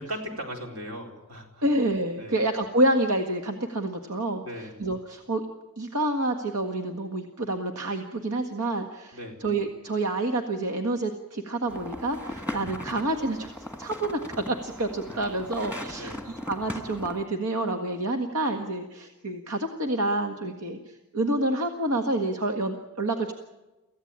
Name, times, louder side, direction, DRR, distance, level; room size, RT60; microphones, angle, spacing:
voice 1, 0.0-1.6 2.2-2.4 4.4-4.7 9.1-9.4 15.1-15.2 16.0-16.3, equal, 70° right, 2 dB, 4.1 m, -38 dB
voice 2, 1.6-5.4 5.8-13.5 13.8-23.3, right 1 dB, 85° right, 4 dB, 1.7 m, -28 dB
sound 1, 11.7-17.3, left 1 dB, 10° right, 1.7 m, -38 dB
24.5 x 15.5 x 8.8 m, 1.1 s
head